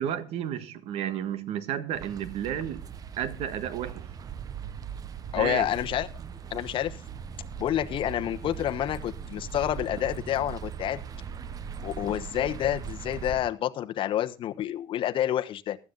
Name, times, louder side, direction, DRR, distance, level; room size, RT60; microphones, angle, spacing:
voice 1, 0.0-2.9 3.2-4.1 5.3-5.7, right 9 dB, 65° right, 1.6 m, -32 dB
sound 1, 1.9-13.5, right 7 dB, 35° right, 0.9 m, -39 dB
voice 2, 5.3-6.1 6.5-7.0 7.6-11.0 11.8-15.8, left 12 dB, 50° left, 1.1 m, -28 dB
15.0 x 12.5 x 4.0 m
cardioid pair, 135°, 11 cm